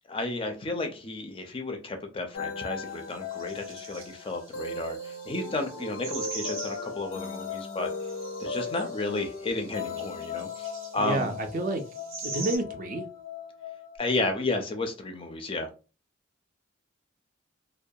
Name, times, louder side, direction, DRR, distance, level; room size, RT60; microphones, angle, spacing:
voice 1, 0.1-7.9 8.4-11.4 14.0-15.7, left 2 dB, 25° left, 0.4 m, -32 dB
sound 1, 2.3-14.0, left 4 dB, 85° left, 0.5 m, -37 dB
sound 2, 2.9-3.0 3.2-12.6, right 3 dB, 85° right, 0.7 m, -43 dB
voice 2, 11.0-11.8 12.2-13.0, right 2 dB, 45° right, 0.4 m, -29 dB
2.2 x 2.1 x 2.6 m
head